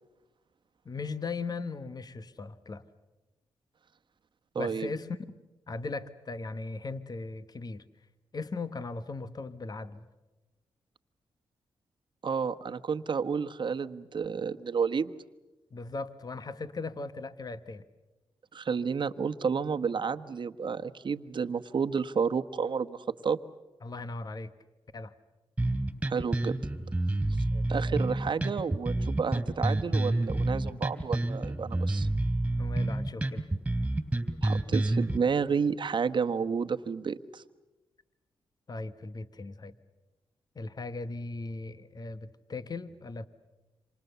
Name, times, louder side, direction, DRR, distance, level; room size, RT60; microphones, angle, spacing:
voice 1, 0.8-2.8 4.6-5.2 5.7-7.8 8.3-10.1 15.7-17.8 23.8-24.5 24.9-25.1 27.5-27.7 32.6-33.5 38.7-39.7 40.5-43.3, left 3 dB, 45° left, 12 dB, 1.3 m, -38 dB
voice 2, 4.5-4.9 12.2-15.1 18.5-23.4 26.1-26.6 27.7-32.1 34.4-37.4, right 6 dB, 55° right, 9 dB, 1.2 m, -31 dB
sound 1, 25.6-35.2, right 2 dB, 10° right, 3.3 m, -28 dB
28.0 x 26.0 x 6.9 m, 1.1 s
cardioid pair, 60°, 10 cm